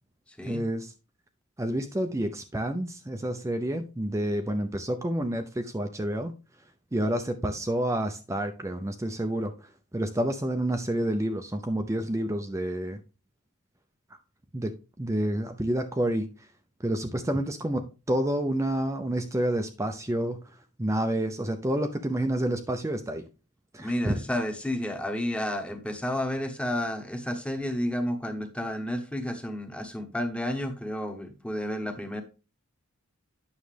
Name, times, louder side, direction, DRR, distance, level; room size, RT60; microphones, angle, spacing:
voice 1, 0.4-0.9 1.6-6.4 6.9-13.0 14.5-16.3 16.8-20.4 20.8-23.2 23.7-24.2, right 1 dB, 15° right, 0.5 m, -29 dB
voice 2, 23.8-32.2, left 1 dB, 5° left, 1.1 m, -31 dB
9.3 x 6.4 x 3.3 m
head